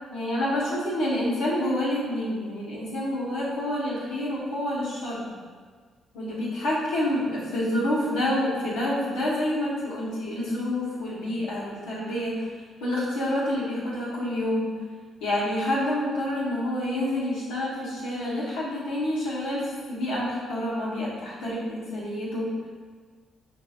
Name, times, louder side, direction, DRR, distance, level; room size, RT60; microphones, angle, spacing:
voice 1, 0.1-5.2 6.1-12.5 12.8-14.7 15.2-22.5, left 1 dB, 90° left, -8 dB, 1.1 m, -28 dB
5.3 x 2.6 x 2.8 m, 1.5 s
supercardioid pair, 60°, 0 cm